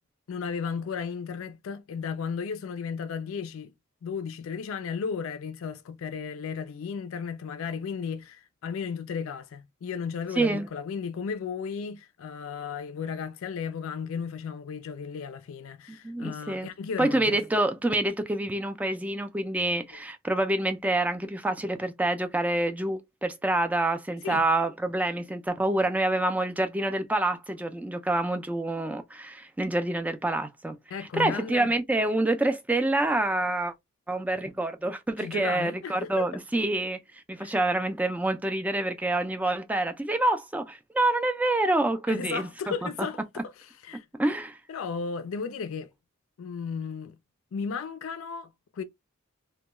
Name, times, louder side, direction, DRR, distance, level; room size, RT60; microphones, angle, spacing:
voice 1, 0.3-3.7 4.0-17.4 24.2-24.4 30.9-31.7 35.2-36.3 37.4-37.5 42.1-44.0 44.7-45.9 46.4-47.2 47.5-48.8, left 6 dB, 70° left, 0.4 m, -34 dB
voice 2, 10.4-10.7 15.9-16.7 17.0-33.7 34.1-37.0 37.3-42.9 44.2-44.6, right 2 dB, 5° right, 0.3 m, -27 dB
2.2 x 2.2 x 2.9 m
head